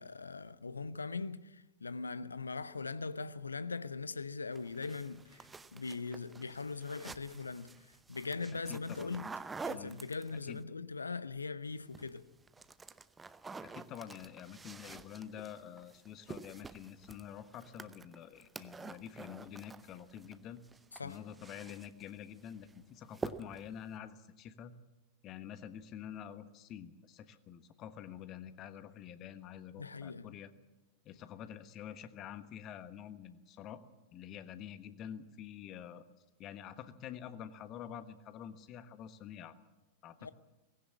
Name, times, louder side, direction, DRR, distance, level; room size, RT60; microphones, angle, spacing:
voice 1, 0.0-9.3 9.6-12.3 20.9-21.2 29.8-30.4 40.2-40.3, left 4 dB, 75° left, 0.8 m, -41 dB
sound 1, 4.5-10.6 11.7-12.2 12.5-20.4 20.6-22.1 22.5-22.8 23.1-23.7, right 4 dB, 15° right, 0.8 m, -48 dB
voice 2, 8.7-9.2 9.7-9.9 10.5-10.6 13.6-20.6 21.0-24.7 25.2-30.5 31.0-33.8 34.1-36.0 36.4-39.5 40.0-40.3, left 9 dB, 35° left, 1.3 m, -47 dB
19.0 x 16.5 x 8.5 m
figure-of-eight pair, 90°, 0 cm